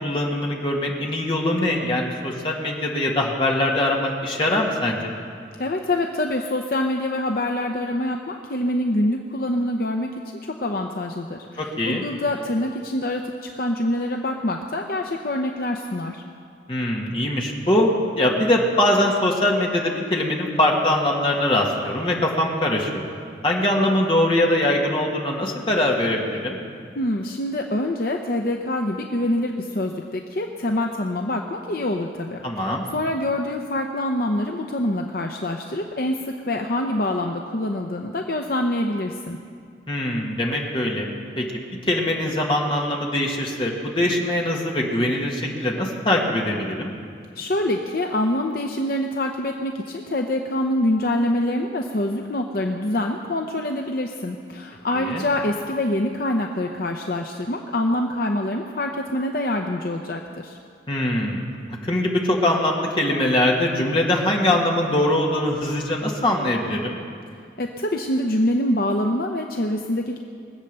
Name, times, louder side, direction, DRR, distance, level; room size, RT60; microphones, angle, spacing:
voice 1, 0.0-5.1 11.6-12.0 16.7-23.0 23.4-26.6 32.4-32.9 39.9-41.1 41.4-41.5 41.8-46.9 55.0-55.2 60.9-61.4 61.8-67.0, left 1 dB, 30° left, -1 dB, 1.9 m, -22 dB
voice 2, 5.6-10.1 10.4-16.2 27.0-39.4 47.4-60.6 67.6-70.2, left 1 dB, 55° left, 3 dB, 0.7 m, -25 dB
22.0 x 8.2 x 6.8 m, 2.3 s
head